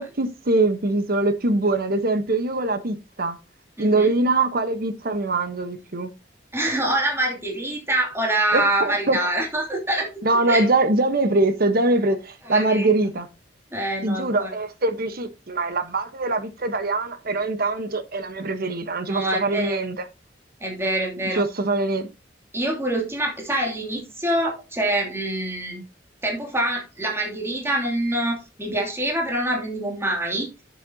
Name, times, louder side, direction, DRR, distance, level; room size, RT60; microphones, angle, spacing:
voice 1, 0.0-3.4 3.8-6.1 8.5-9.3 10.2-13.3 14.0-20.0 21.2-22.1, right 2 dB, 55° right, 1.1 m, -23 dB
voice 2, 3.8-4.1 6.5-10.1 10.5-10.6 12.5-12.9 13.7-14.5 19.1-19.8 20.6-21.4 22.5-25.8 26.2-30.5, right 1 dB, 15° right, 2.8 m, -25 dB
11.0 x 7.5 x 2.8 m
head